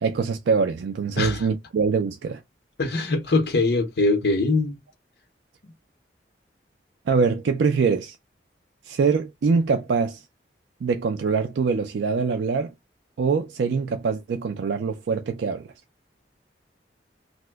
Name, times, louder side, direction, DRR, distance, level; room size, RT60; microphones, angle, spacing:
voice 1, 0.0-2.4 7.1-8.2 8.9-10.2 10.8-12.7 13.2-15.7, right 5 dB, 80° right, 0.4 m, -23 dB
voice 2, 1.2-1.5 2.8-4.8, left 3 dB, 60° left, 0.7 m, -22 dB
2.9 x 2.1 x 3.3 m
head